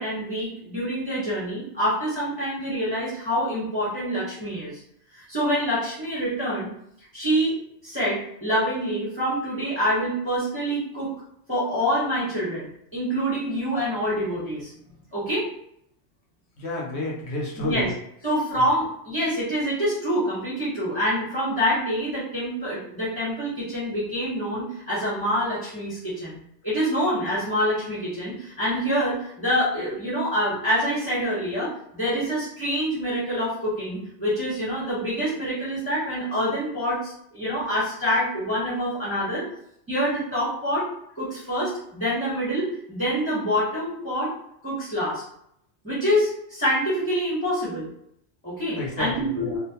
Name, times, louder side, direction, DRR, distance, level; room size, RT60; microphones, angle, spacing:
voice 1, 0.0-4.8 5.1-6.7 7.1-7.5 7.8-11.1 11.5-14.7 15.1-15.4 17.6-17.9 18.2-39.4 39.9-40.9 41.1-44.3 44.6-45.2 45.8-47.9 48.4-49.5, equal, 5° left, -8 dB, 1.0 m, -26 dB
voice 2, 16.6-17.9 48.7-49.6, left 1 dB, 70° left, -4 dB, 1.0 m, -30 dB
2.5 x 2.1 x 2.8 m, 0.72 s
omnidirectional pair, 1.2 m